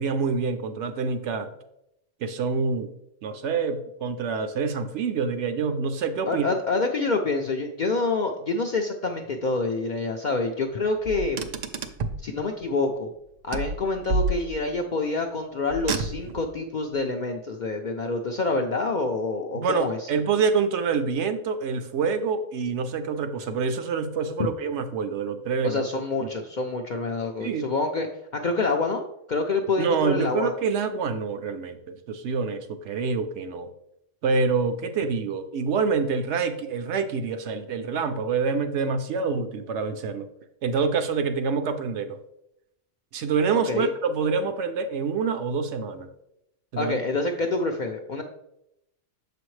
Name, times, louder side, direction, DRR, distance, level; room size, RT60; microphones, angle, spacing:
voice 1, 0.0-1.5 2.2-2.9 3.2-6.4 19.5-25.8 26.2-26.3 27.4-27.7 29.8-31.8 32.1-33.7 34.2-40.3 40.6-42.2 43.1-46.1 46.7-46.9, right 5 dB, 70° right, 8 dB, 0.9 m, -26 dB
voice 2, 6.3-11.4 12.2-13.1 13.4-20.1 25.6-28.1 28.3-30.5 43.5-43.9 46.8-48.2, left 3 dB, 60° left, 2 dB, 0.5 m, -27 dB
Car, 11.1-12.3 13.5-14.8 15.7-16.5, right 3 dB, 90° right, 0.3 m, -29 dB
6.9 x 5.1 x 3.1 m, 0.83 s
omnidirectional pair, 1.3 m